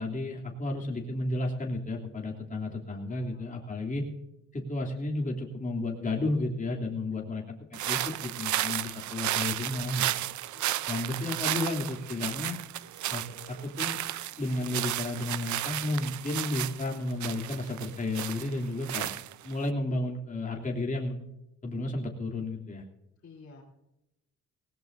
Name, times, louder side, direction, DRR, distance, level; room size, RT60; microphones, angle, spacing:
voice 1, 0.0-4.0 4.5-7.4 7.7-10.1 10.9-12.5 13.1-14.0 14.4-19.1 19.4-21.2 21.6-22.8, left 2 dB, 25° left, -2 dB, 3.1 m, -32 dB
voice 2, 2.9-3.4 7.1-7.4 10.5-11.1 23.2-23.6, left 4 dB, 50° left, -5 dB, 3.7 m, -54 dB
sound 1, 7.7-19.7, right 14 dB, 70° right, 0.7 m, -33 dB
18.5 x 18.0 x 2.7 m, 0.89 s
cardioid pair, 90°, 30 cm